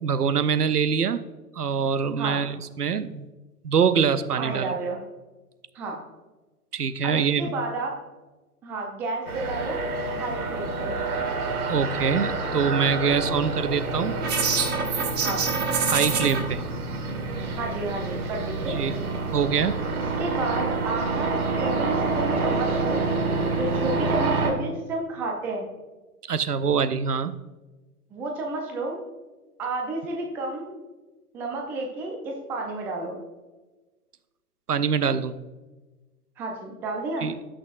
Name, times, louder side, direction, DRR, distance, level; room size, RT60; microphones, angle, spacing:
voice 1, 0.0-1.2 1.6-3.3 3.6-4.7 6.7-7.5 11.7-14.2 15.9-16.6 18.6-18.9 19.3-19.8 26.3-27.4 34.7-35.3 37.2-37.3, right 6 dB, 90° right, 13 dB, 0.7 m, -24 dB
voice 2, 4.4-5.0 5.7-6.0 7.0-7.9 8.6-9.8 10.1-11.0 15.2-15.5 17.6-18.8 20.2-23.1 23.6-25.7 28.1-29.0 29.6-30.8 31.3-33.2 36.4-37.3, right 2 dB, 5° right, 0 dB, 0.4 m, -31 dB
sound 1, 9.3-24.5, right 3 dB, 70° right, 1.8 m, -28 dB
sound 2, 14.2-16.4, right 5 dB, 20° right, 1.2 m, -25 dB
16.5 x 6.3 x 2.4 m, 1.2 s
figure-of-eight pair, 115°, 45 cm